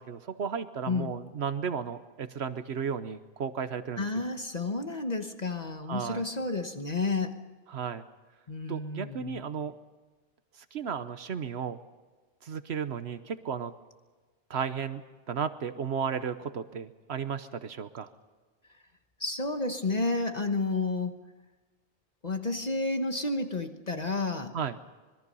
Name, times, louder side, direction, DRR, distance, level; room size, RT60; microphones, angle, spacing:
voice 1, 0.0-4.1 5.9-6.2 7.7-8.0 8.7-9.7 10.7-11.8 12.4-13.7 14.5-15.0 15.3-18.1 24.5-24.8, right 7 dB, 85° right, 10 dB, 1.2 m, -34 dB
voice 2, 4.0-7.4 8.5-9.4 19.2-21.2 22.2-24.5, left 3 dB, 40° left, 6 dB, 1.3 m, -31 dB
26.0 x 22.0 x 5.5 m, 1.3 s
omnidirectional pair, 1.1 m